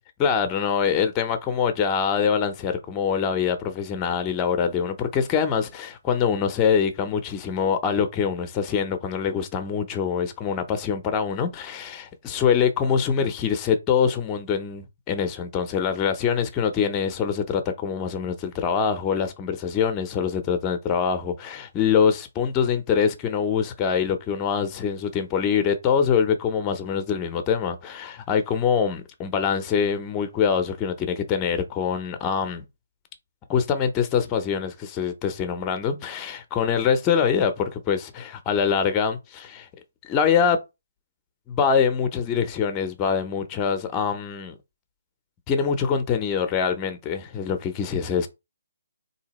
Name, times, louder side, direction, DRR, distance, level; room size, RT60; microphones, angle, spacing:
voice 1, 0.2-32.6 33.5-39.7 40.0-40.6 41.5-44.6 45.5-48.3, left 7 dB, 20° left, 0.6 m, -24 dB
3.8 x 2.7 x 3.0 m
hypercardioid pair, 155°, 0 cm